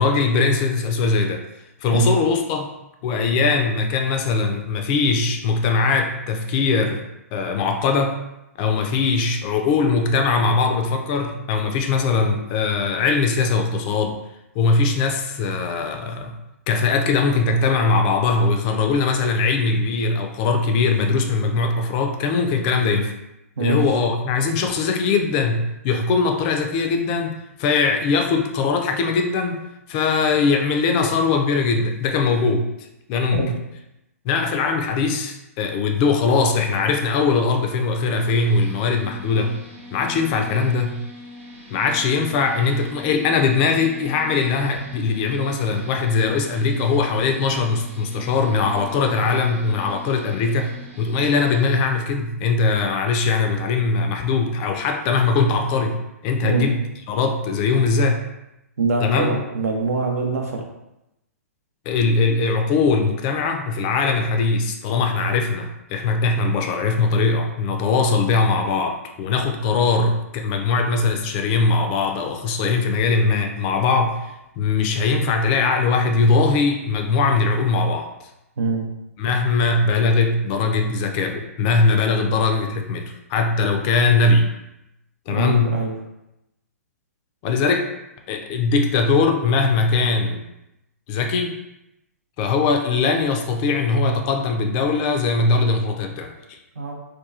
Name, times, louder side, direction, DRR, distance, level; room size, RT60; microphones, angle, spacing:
voice 1, 0.0-1.4 1.8-2.7 3.0-7.0 7.3-8.2 8.6-14.2 14.6-16.4 16.7-23.1 23.6-29.6 29.9-33.5 34.2-39.6 39.9-41.0 41.7-50.7 51.0-56.0 56.2-58.2 59.0-59.4 61.9-78.1 79.2-83.0 83.3-84.5 85.3-85.8 87.4-87.9 88.3-90.4 91.1-91.5 92.4-96.6, left 4 dB, 35° left, 5 dB, 0.3 m, -21 dB
sound 1, 38.1-51.8, left 2 dB, 50° right, 0.9 m, -42 dB
voice 2, 56.4-56.7 58.8-60.6 78.6-78.9 85.3-86.0 96.8-96.9, right 3 dB, 70° right, 1 dB, 0.6 m, -23 dB
2.9 x 2.2 x 2.4 m, 0.89 s
figure-of-eight pair, 120°, 8 cm